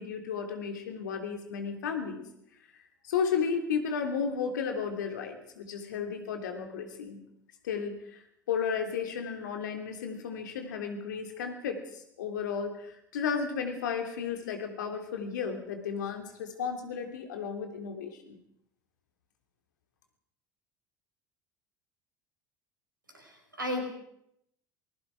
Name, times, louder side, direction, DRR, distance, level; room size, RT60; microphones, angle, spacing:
voice 1, 0.0-2.2 3.0-7.2 7.6-8.2 8.5-18.4, left 6 dB, 70° left, 5 dB, 3.1 m, -33 dB
voice 2, 23.1-23.8, left 1 dB, 85° right, 4 dB, 4.8 m, -34 dB
27.5 x 21.0 x 4.8 m, 0.75 s
figure-of-eight pair, 65°, 11 cm